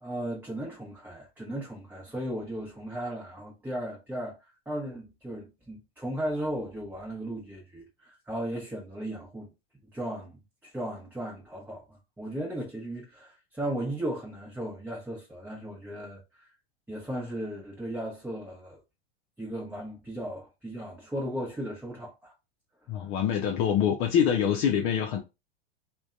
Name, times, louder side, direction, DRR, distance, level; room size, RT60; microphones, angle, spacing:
voice 1, 0.0-4.4 4.7-9.5 9.9-16.5 16.9-18.8 19.4-22.3, right 1 dB, 5° right, 0.8 m, -36 dB
voice 2, 22.9-25.2, left 8 dB, 50° left, 0.6 m, -25 dB
2.6 x 2.2 x 2.3 m
hypercardioid pair, 100°, 32 cm